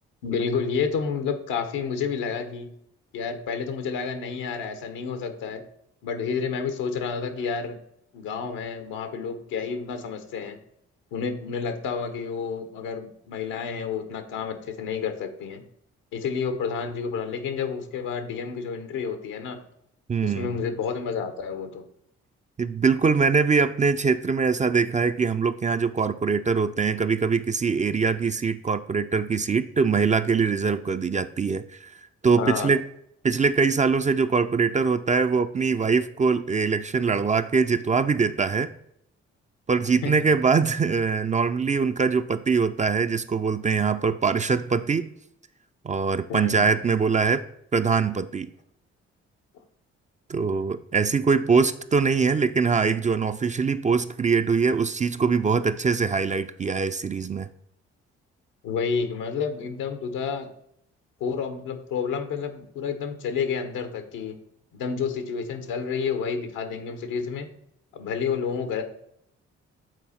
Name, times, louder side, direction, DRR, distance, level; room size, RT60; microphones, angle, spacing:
voice 1, 0.2-2.7 3.1-5.6 6.0-7.8 8.1-10.6 11.1-15.6 16.1-19.6 20.2-21.8 32.4-32.7 40.0-40.1 46.3-46.7 58.6-60.5 61.2-64.4 64.7-67.5 67.9-68.8, left 6 dB, 75° left, 8 dB, 0.9 m, -30 dB
voice 2, 20.1-20.5 22.6-32.0 32.2-32.8 33.2-38.7 39.7-45.1 45.8-47.4 47.7-48.5 50.3-57.5, right 5 dB, 25° right, 10 dB, 0.4 m, -23 dB
7.9 x 4.1 x 4.1 m, 0.74 s
hypercardioid pair, 45°, 32 cm